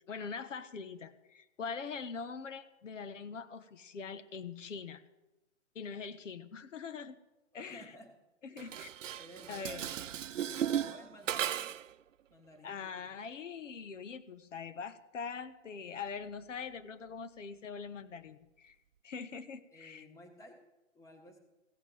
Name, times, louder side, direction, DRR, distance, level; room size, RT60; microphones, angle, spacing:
voice 1, 0.1-5.0 5.7-7.2 7.5-7.9 8.4-8.9 9.5-9.9 12.6-18.7 19.0-20.0, left 5 dB, 80° left, 11 dB, 1.1 m, -43 dB
voice 2, 7.5-8.1 8.5-8.8 9.2-11.8 12.3-13.1 19.7-20.6 20.9-21.4, left 1 dB, 10° left, 4 dB, 1.5 m, -55 dB
Dishes pots and pans, 8.6-11.9, right 10 dB, 85° right, 0.6 m, -36 dB
15.5 x 7.4 x 7.8 m, 1.0 s
hypercardioid pair, 145°, 37 cm